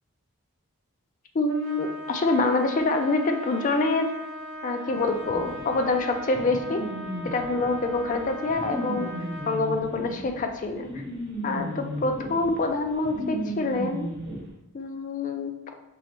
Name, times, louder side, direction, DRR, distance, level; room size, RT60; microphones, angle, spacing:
voice 1, 1.3-4.1 4.6-6.8 7.2-9.1 9.5-11.0 11.4-14.1 14.7-15.5, left 3 dB, 35° left, 5 dB, 0.3 m, -26 dB
Trumpet, 1.5-9.6, equal, 65° right, 0.7 m, -39 dB
sound 1, 5.3-14.4, equal, 50° right, 1.1 m, -35 dB
5.4 x 2.0 x 2.9 m, 0.94 s
head